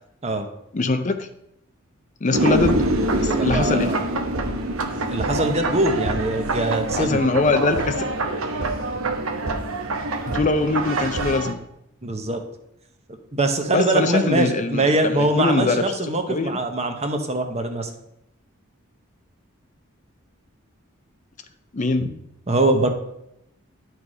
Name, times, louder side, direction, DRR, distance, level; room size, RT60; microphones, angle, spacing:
voice 1, 0.7-1.3 2.2-2.9 3.2-3.9 7.0-8.0 10.3-11.6 13.7-15.8 16.3-16.5 21.7-22.1, left 3 dB, 35° left, 8 dB, 0.5 m, -22 dB
sound 1, 2.3-11.5, right 2 dB, 90° right, 1.0 m, -25 dB
voice 2, 3.1-4.0 5.1-7.2 12.0-12.4 13.3-17.9 22.5-22.9, right 2 dB, 30° right, 5 dB, 1.0 m, -23 dB
11.0 x 4.7 x 4.8 m, 0.80 s
head